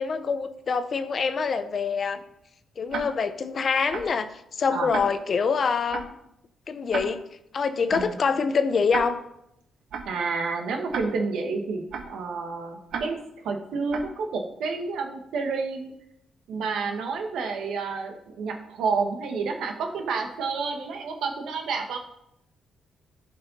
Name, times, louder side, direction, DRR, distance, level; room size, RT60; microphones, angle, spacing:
voice 1, 0.0-2.2 2.8-6.1 6.7-7.2 7.5-9.2, left 5 dB, 40° left, 11 dB, 0.6 m, -25 dB
Tick-tock, 2.9-3.0 3.9-4.0 4.9-5.0 5.9-6.0 6.9-7.0 7.9-8.0 8.9-9.0 9.9-10.0 10.9-11.0 11.9-12.0 12.9-13.0 13.9-14.0, right 6 dB, 65° right, 1.2 m, -32 dB
voice 2, 10.1-13.2 13.4-15.9 16.5-22.0, right 4 dB, 85° right, 4 dB, 1.4 m, -29 dB
14.0 x 5.4 x 4.1 m, 0.80 s
cardioid pair, 160°, 0 cm